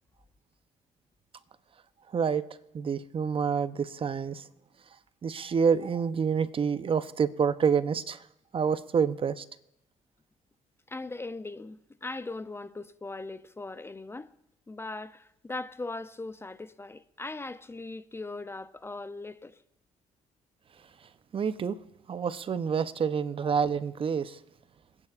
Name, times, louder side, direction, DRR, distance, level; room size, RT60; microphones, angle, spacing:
voice 1, 2.1-2.4 2.7-4.4 5.2-8.2 8.5-9.4 21.3-21.8 22.1-24.4, right 6 dB, 45° right, 0.7 m, -27 dB
voice 2, 10.9-14.3 14.7-19.6 23.4-23.5, left 2 dB, 20° left, 0.5 m, -39 dB
26.0 x 9.8 x 2.4 m
supercardioid pair, 70°, 13 cm